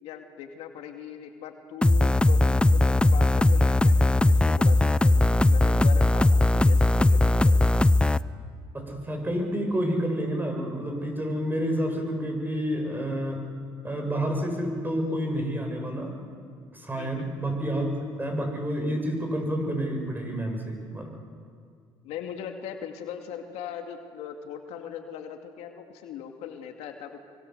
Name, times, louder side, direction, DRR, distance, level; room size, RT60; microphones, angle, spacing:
voice 1, 0.0-7.6 16.9-17.3 22.0-27.2, left 8 dB, 75° left, 5 dB, 2.4 m, -40 dB
sound 1, 1.8-8.2, left 2 dB, 10° left, 0.6 m, -19 dB
voice 2, 8.7-13.4 13.8-16.1 16.7-17.9 18.2-21.1, equal, 15° right, 3 dB, 7.5 m, -29 dB
25.0 x 24.0 x 8.0 m, 2.1 s
supercardioid pair, 75°, 11 cm